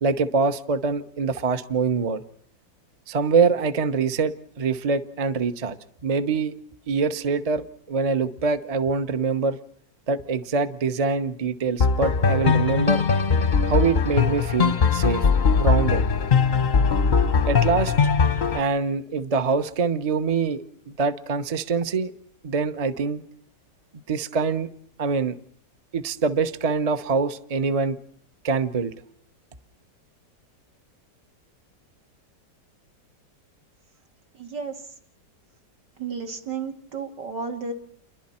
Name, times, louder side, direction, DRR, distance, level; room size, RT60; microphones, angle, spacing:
voice 1, 0.0-2.2 3.1-5.8 6.0-6.5 6.9-9.6 10.1-13.0 13.7-15.3 15.6-16.0 17.5-17.9 18.5-20.6 20.9-22.1 22.4-23.2 23.9-24.7 25.0-25.4 25.9-28.0 28.4-28.9, right 5 dB, 35° right, 10 dB, 0.6 m, -24 dB
sound 1, 11.8-18.6, left 5 dB, 40° left, 0.7 m, -20 dB
voice 2, 34.3-34.8 36.0-37.7, right 5 dB, 75° right, 2 dB, 2.9 m, -32 dB
29.0 x 22.5 x 4.4 m, 0.65 s
omnidirectional pair, 1.9 m